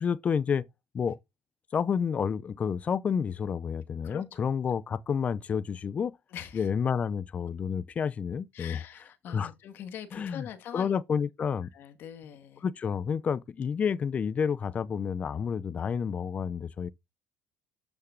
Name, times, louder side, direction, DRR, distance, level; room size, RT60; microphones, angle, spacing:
voice 1, 0.0-0.7 0.9-1.2 1.7-6.1 6.5-8.8 9.3-9.5 10.1-10.4 10.7-11.7 12.6-16.9, left 7 dB, 35° left, 0.6 m, -29 dB
voice 2, 4.0-4.4 6.3-6.7 8.5-10.9 11.7-12.6, left 9 dB, 60° left, 1.9 m, -43 dB
8.2 x 6.5 x 3.8 m
cardioid pair, 115°, 4 cm